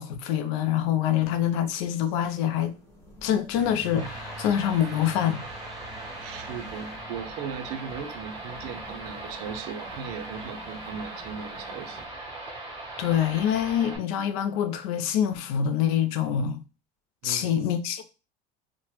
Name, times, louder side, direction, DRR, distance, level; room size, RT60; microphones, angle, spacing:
voice 1, 0.0-2.7 3.2-5.5 13.0-16.6 17.2-18.0, left 10 dB, 80° left, 0.5 m, -25 dB
sound 1, 1.0-12.1, left 3 dB, 15° left, 1.3 m, -52 dB
sound 2, 3.5-7.5, right 2 dB, ahead, 0.7 m, -45 dB
sound 3, 4.0-14.0, right 2 dB, 20° right, 1.4 m, -39 dB
voice 2, 6.2-12.1 17.2-17.5, right 7 dB, 65° right, 0.5 m, -38 dB
3.0 x 2.1 x 3.1 m
supercardioid pair, 120°, 18 cm